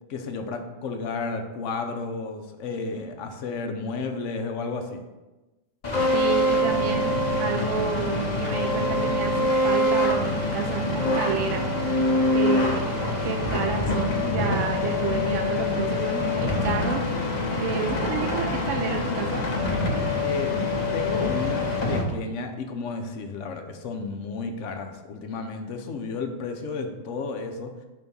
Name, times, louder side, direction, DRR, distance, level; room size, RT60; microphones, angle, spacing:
voice 1, 0.1-5.0 20.2-20.6 20.9-27.7, left 4 dB, 65° left, 6 dB, 0.9 m, -32 dB
sound 1, 5.8-22.0, left 1 dB, 35° left, 0.8 m, -25 dB
voice 2, 6.1-12.0 12.3-13.0 13.2-19.5, right 5 dB, 65° right, 3 dB, 0.9 m, -30 dB
5.1 x 3.5 x 5.3 m, 1.1 s
omnidirectional pair, 1.5 m